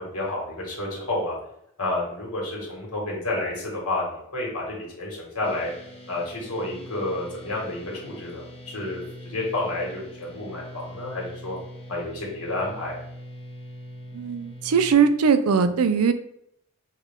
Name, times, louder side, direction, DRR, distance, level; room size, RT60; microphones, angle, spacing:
voice 1, 0.0-1.4 1.8-5.7 6.1-11.6 11.9-13.0, left 2 dB, 90° left, -2 dB, 1.6 m, -30 dB
sound 1, 5.4-14.9, equal, 25° left, 0.5 m, -43 dB
voice 2, 14.1-16.1, right 6 dB, 90° right, 10 dB, 0.4 m, -20 dB
5.3 x 2.4 x 3.5 m, 0.74 s
head